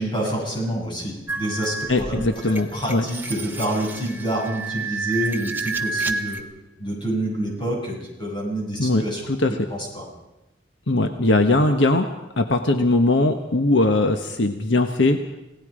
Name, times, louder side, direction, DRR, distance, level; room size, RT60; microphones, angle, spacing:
voice 1, 0.0-6.4 6.8-9.2 9.7-10.0, right 1 dB, 25° left, -1 dB, 7.1 m, -27 dB
sound 1, 1.3-6.4, right 4 dB, 10° right, 1.4 m, -30 dB
voice 2, 1.9-3.1 8.8-9.5 10.9-12.1 12.4-15.2, left 2 dB, 75° left, 6 dB, 1.3 m, -20 dB
29.0 x 18.0 x 5.1 m, 0.97 s
head